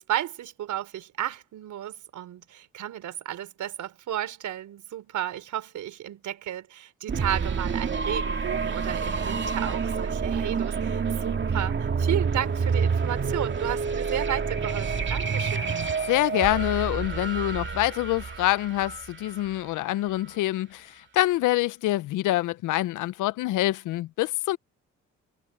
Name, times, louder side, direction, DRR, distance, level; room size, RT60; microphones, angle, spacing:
voice 1, 0.0-15.8, right 11 dB, 75° right, 4.2 m, -33 dB
sound 1, 7.1-19.8, right 5 dB, 40° right, 2.3 m, -28 dB
voice 2, 16.1-24.6, left 16 dB, 85° left, 0.6 m, -26 dB
cardioid pair, 90°, 30 cm